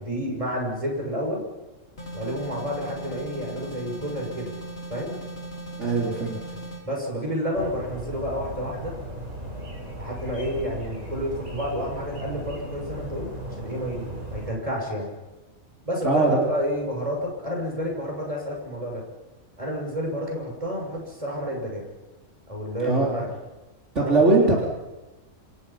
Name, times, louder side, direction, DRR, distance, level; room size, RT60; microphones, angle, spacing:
voice 1, 0.0-1.4 2.1-4.5 4.9-5.1 6.8-9.0 10.0-15.1 15.8-19.0 19.6-21.8 22.5-23.3 24.0-24.4, equal, 25° right, -1 dB, 6.6 m, -30 dB
sound 1, 2.0-6.8, right 1 dB, 45° left, 5.5 m, -38 dB
voice 2, 5.8-6.4 16.0-16.5 22.8-23.1 24.0-24.6, right 3 dB, 55° right, -3 dB, 4.0 m, -20 dB
sound 2, 7.5-14.5, right 1 dB, 85° right, 6.0 m, -36 dB
27.5 x 27.5 x 5.8 m, 1.1 s
omnidirectional pair, 1.5 m